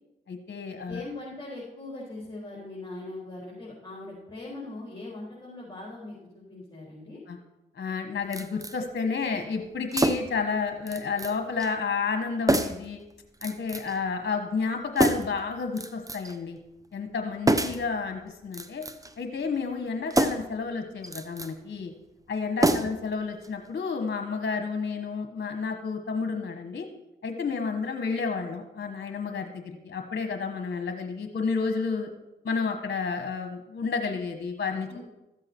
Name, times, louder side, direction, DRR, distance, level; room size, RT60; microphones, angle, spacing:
voice 1, 0.3-1.0 7.3-7.4 7.7-13.0 13.4-16.6 16.9-18.8 19.2-21.9 22.3-26.9 27.2-32.1 32.4-35.0, left 5 dB, 55° left, 6 dB, 1.3 m, -31 dB
voice 2, 0.9-7.2 22.5-22.8 34.9-35.0, left 2 dB, 20° left, -6 dB, 4.2 m, -40 dB
sound 1, 8.3-8.8 9.9-10.4 10.9-11.3 11.6-11.7 12.5-12.9 13.4-14.0 15.0-15.4 15.8-16.4 17.5-17.9 18.5-19.1 20.1-20.6 21.0-21.5 22.6-23.1 23.4-23.5, right 1 dB, 15° right, 0.9 m, -26 dB
13.5 x 7.7 x 4.5 m, 0.93 s
supercardioid pair, 45°, 20 cm